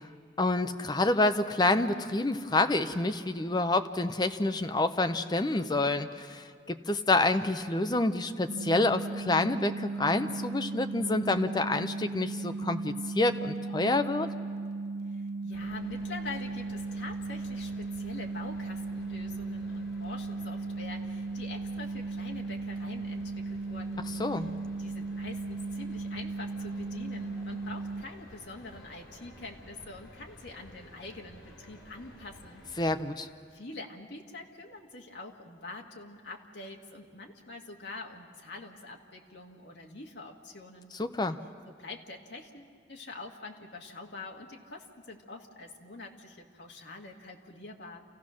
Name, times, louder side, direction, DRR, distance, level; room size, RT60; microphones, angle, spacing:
voice 1, 0.4-14.3 24.2-24.5 32.8-33.3 41.0-41.4, left 2 dB, 20° left, 9 dB, 0.5 m, -28 dB
sound 1, 8.5-28.0, right 3 dB, 55° right, 0.5 m, -36 dB
voice 2, 15.1-24.5 24.8-32.6 33.5-41.0 41.8-48.0, left 3 dB, 65° left, 1 dB, 1.6 m, -45 dB
sound 2, 15.5-33.0, left 1 dB, 85° left, 4.6 m, -53 dB
28.5 x 15.5 x 6.3 m, 2.2 s
head